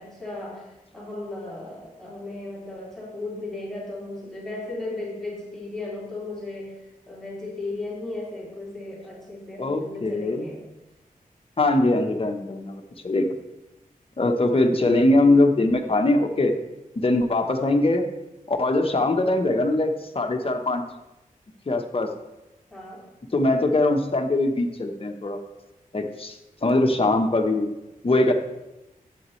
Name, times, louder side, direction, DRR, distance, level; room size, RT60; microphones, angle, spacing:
voice 1, 0.0-10.6 22.7-23.1, left 2 dB, 5° left, -7 dB, 3.2 m, -36 dB
voice 2, 9.6-10.5 11.6-13.3 14.2-16.5 17.0-18.0 18.5-20.8 21.6-22.1 23.3-25.4 25.9-27.7 28.0-28.3, left 2 dB, 40° left, 4 dB, 1.1 m, -22 dB
11.5 x 8.6 x 3.2 m, 0.97 s
wide cardioid pair, 80°, 15 cm